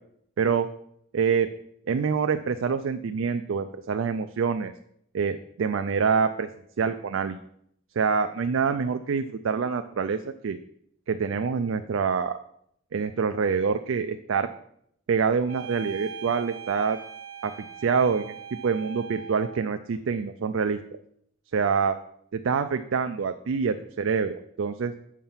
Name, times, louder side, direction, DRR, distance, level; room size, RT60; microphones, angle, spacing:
voice 1, 1.1-1.5 1.9-4.7 5.1-6.5 6.8-7.4 8.0-10.6 11.1-12.3 12.9-14.5 15.1-17.0 17.4-17.5 17.8-18.3 18.6-21.0 21.5-22.0 22.3-24.9, right 6 dB, 70° right, 8 dB, 0.4 m, -26 dB
sound 1, 15.5-19.7, right 5 dB, 85° right, 1.3 m, -41 dB
7.3 x 5.6 x 5.6 m, 0.71 s
head